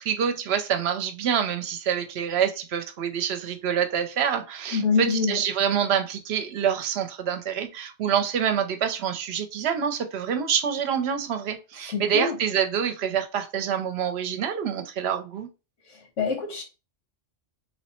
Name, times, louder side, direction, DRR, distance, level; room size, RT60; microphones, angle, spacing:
voice 1, 0.0-15.5, right 8 dB, 65° right, 0.8 m, -26 dB
voice 2, 4.7-5.4 11.8-12.4 15.9-16.6, left 5 dB, 85° left, 1.3 m, -26 dB
3.1 x 2.1 x 4.2 m
omnidirectional pair, 1.2 m